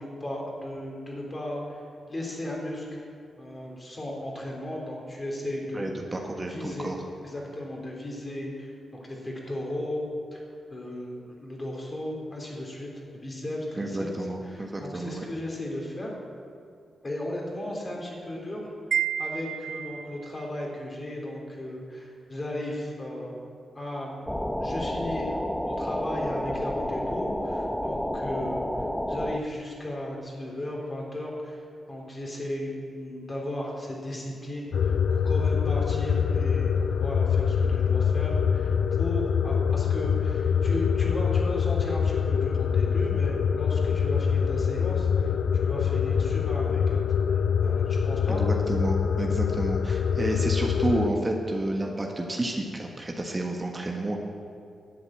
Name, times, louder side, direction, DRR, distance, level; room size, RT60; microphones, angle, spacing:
voice 1, 0.0-3.0 3.4-5.9 6.4-6.9 7.2-10.0 10.3-10.5 10.7-16.2 17.0-18.6 19.2-23.4 23.7-24.2 24.6-28.7 29.1-47.0 47.3-48.4, left 1 dB, 35° left, -2 dB, 3.7 m, -35 dB
voice 2, 5.7-7.0 13.8-15.2 48.3-54.2, right 1 dB, 30° right, 1 dB, 1.5 m, -30 dB
Wind chime, 18.9-20.3, right 8 dB, 70° right, 0.7 m, -30 dB
sound 1, 24.3-29.4, left 1 dB, 10° left, 0.7 m, -30 dB
sound 2, 34.7-51.1, left 7 dB, 75° left, 0.3 m, -25 dB
11.0 x 8.0 x 7.8 m, 2.4 s
cardioid pair, 55°, 0 cm